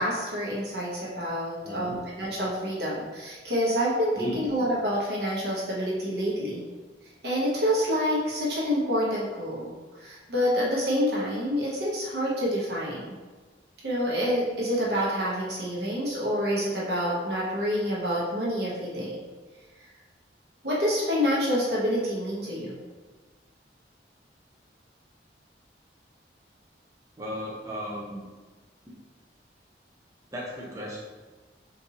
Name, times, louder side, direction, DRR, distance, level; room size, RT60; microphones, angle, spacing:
voice 1, 0.0-6.6 7.2-13.0 13.8-19.2 20.6-22.8, equal, 65° right, -5 dB, 0.9 m, -27 dB
voice 2, 1.6-2.0 4.1-4.4 27.2-28.3 30.3-31.0, equal, 20° right, -7 dB, 0.5 m, -35 dB
3.9 x 2.5 x 2.9 m, 1.3 s
head